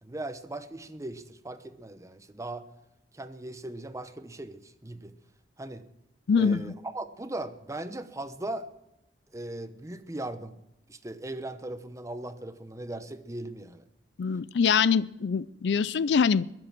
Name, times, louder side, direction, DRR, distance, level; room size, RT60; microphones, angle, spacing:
voice 1, 0.0-2.7 3.1-5.1 5.6-5.9 6.3-8.7 9.3-10.6 10.9-13.9, right 1 dB, 15° right, 10 dB, 0.9 m, -38 dB
voice 2, 6.3-6.7 14.2-16.4, left 6 dB, 70° left, 19 dB, 0.4 m, -24 dB
22.0 x 7.7 x 6.0 m, 0.88 s
head